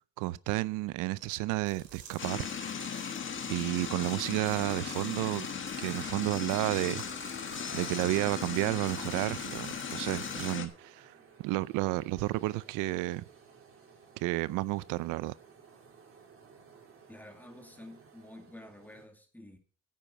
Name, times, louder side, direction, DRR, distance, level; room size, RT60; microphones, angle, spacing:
voice 1, 0.2-2.5 3.5-5.5 5.8-7.0 7.7-11.1 11.4-13.2 14.2-15.3, right 18 dB, 90° right, 0.6 m, -31 dB
sound 1, 1.6-10.6, right 6 dB, 70° right, 4.9 m, -49 dB
sound 2, 2.2-10.7, left 7 dB, 40° left, 1.5 m, -38 dB
sound 3, 4.5-19.1, right 5 dB, 45° right, 4.0 m, -58 dB
voice 2, 17.1-19.6, left 1 dB, 5° left, 2.2 m, -50 dB
9.7 x 9.2 x 5.5 m
cardioid pair, 125°, 30 cm